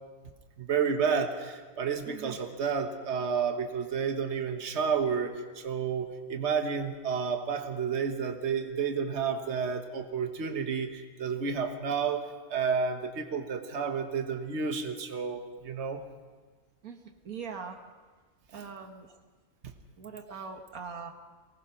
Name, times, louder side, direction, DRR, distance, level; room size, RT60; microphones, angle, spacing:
voice 1, 0.6-16.0 18.5-18.7, right 6 dB, 55° right, 5 dB, 1.6 m, -31 dB
voice 2, 2.1-2.4 16.8-17.8 18.5-19.1 20.0-21.1, right 6 dB, 90° right, 5 dB, 1.9 m, -41 dB
23.5 x 18.5 x 5.8 m, 1.4 s
omnidirectional pair, 1.5 m